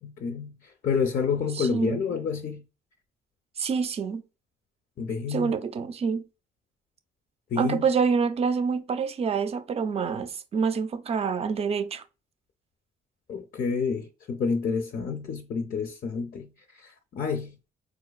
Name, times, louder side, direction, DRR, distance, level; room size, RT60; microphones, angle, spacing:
voice 1, 0.0-0.5 0.8-2.6 5.0-5.5 7.5-7.8 13.3-16.5 16.8-17.5, left 5 dB, 45° left, 0.4 m, -29 dB
voice 2, 1.5-2.0 3.6-4.2 5.3-6.2 7.6-12.0, right 5 dB, 30° right, 0.4 m, -27 dB
4.4 x 2.3 x 2.2 m
cardioid pair, 90°, 20 cm